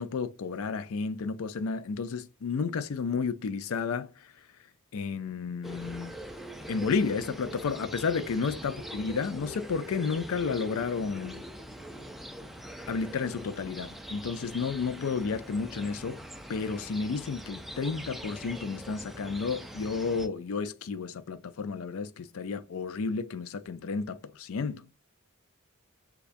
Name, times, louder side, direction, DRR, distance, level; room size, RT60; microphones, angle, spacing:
voice 1, 0.0-4.3 4.9-6.2 6.7-11.5 12.9-16.2 16.5-24.8, left 5 dB, 70° left, 0.4 m, -32 dB
sound 1, 5.6-20.3, equal, ahead, 0.4 m, -43 dB
6.7 x 2.3 x 2.5 m
head